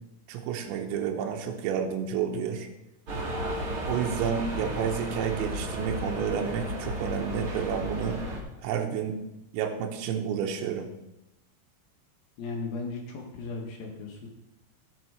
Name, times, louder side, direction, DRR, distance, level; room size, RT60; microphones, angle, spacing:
voice 1, 0.3-2.7 3.9-8.2 8.6-9.2 9.5-10.9, right 7 dB, 90° right, 2 dB, 3.7 m, -30 dB
sound 1, 3.1-8.4, right 1 dB, 45° right, 1.8 m, -34 dB
voice 2, 12.4-14.3, left 3 dB, 65° left, 0 dB, 2.4 m, -36 dB
17.0 x 6.6 x 4.7 m, 0.93 s
omnidirectional pair, 5.9 m